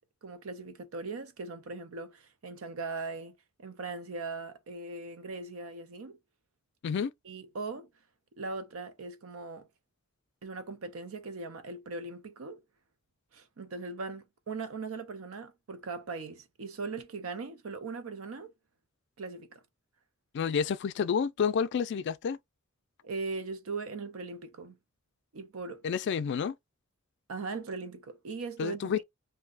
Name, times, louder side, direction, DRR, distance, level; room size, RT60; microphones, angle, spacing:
voice 1, 0.2-6.2 7.2-7.9 8.4-9.7 10.4-12.6 13.3-18.5 19.2-19.6 23.0-24.8 25.3-25.8 27.3-29.0, right 4 dB, 75° right, 0.6 m, -39 dB
voice 2, 20.3-22.4 25.8-26.6 28.6-29.0, left 6 dB, 55° left, 0.3 m, -29 dB
2.7 x 2.2 x 3.8 m
head